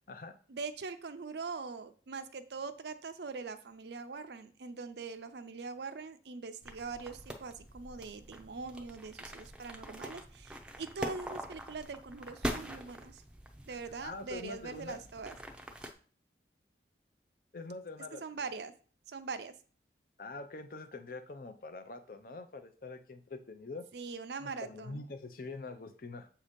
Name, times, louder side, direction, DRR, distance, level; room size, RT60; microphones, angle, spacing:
voice 1, 0.5-13.2 13.7-15.4 18.2-18.7 19.1-19.5 23.9-25.0, right 4 dB, 70° right, 10 dB, 0.6 m, -42 dB
sound 1, 6.6-15.9, equal, 5° right, 0.5 m, -44 dB
voice 2, 14.0-15.0 17.5-18.2 20.2-23.8 24.4-26.3, left 3 dB, 50° left, 8 dB, 0.6 m, -44 dB
7.2 x 2.8 x 5.1 m, 0.41 s
head